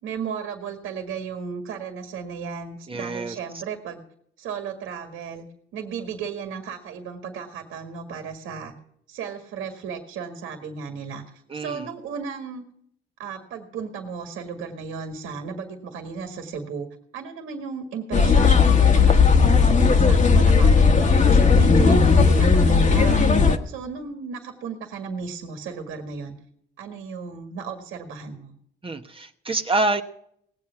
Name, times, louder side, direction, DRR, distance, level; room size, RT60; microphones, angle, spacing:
voice 1, 0.0-4.0 4.4-5.5 5.7-8.7 9.1-11.2 11.5-12.6 13.2-16.9 17.1-23.3 23.6-26.3 26.8-28.5, right 6 dB, 90° right, 5 dB, 1.9 m, -35 dB
voice 2, 2.9-3.4 11.5-11.9 28.8-30.0, right 2 dB, 25° right, 6 dB, 1.1 m, -26 dB
sound 1, 18.1-23.6, left 5 dB, 40° left, 1.5 m, -16 dB
19.0 x 8.3 x 5.9 m, 0.69 s
cardioid pair, 90°, 20 cm